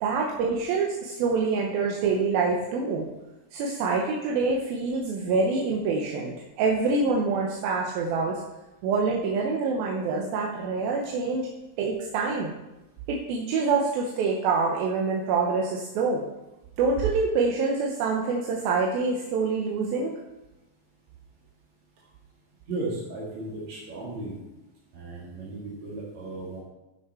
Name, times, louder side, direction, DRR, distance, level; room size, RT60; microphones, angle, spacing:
voice 1, 0.0-3.1 3.5-8.4 8.8-11.5 11.8-12.5 13.1-16.2 16.8-20.2, right 4 dB, 75° right, -1 dB, 2.4 m, -26 dB
voice 2, 22.7-24.3 24.9-26.6, right 2 dB, 50° right, -8 dB, 2.9 m, -35 dB
12.5 x 6.3 x 4.4 m, 0.99 s
omnidirectional pair, 4.9 m